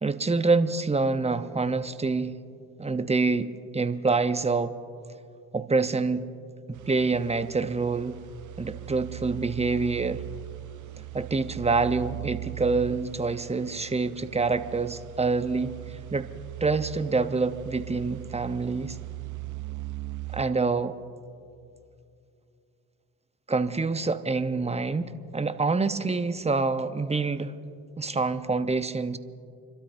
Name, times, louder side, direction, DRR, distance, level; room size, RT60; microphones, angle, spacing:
voice 1, 0.0-2.3 2.8-4.8 5.5-6.3 6.7-8.2 8.6-10.2 11.1-16.3 16.6-19.0 20.3-21.0 23.5-27.5 28.0-29.2, right 4 dB, 15° right, 11 dB, 0.8 m, -26 dB
sound 1, 6.7-20.5, right 20 dB, 45° right, 0.6 m, -40 dB
30.0 x 12.5 x 2.7 m, 2.5 s
hypercardioid pair, 50°, 42 cm